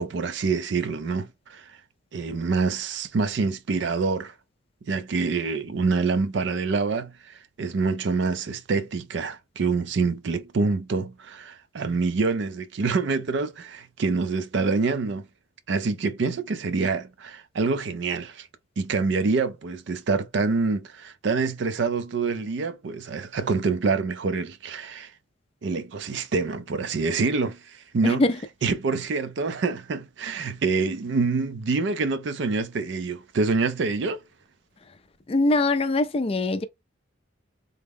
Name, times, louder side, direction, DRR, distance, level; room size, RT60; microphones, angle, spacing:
voice 1, 0.0-1.8 2.1-4.3 4.9-15.3 15.7-18.5 18.8-25.1 25.6-28.2 28.6-34.2, right 4 dB, 60° right, 0.4 m, -26 dB
voice 2, 28.0-28.4 35.3-36.6, left 2 dB, 30° left, 0.4 m, -22 dB
3.5 x 2.1 x 3.5 m
head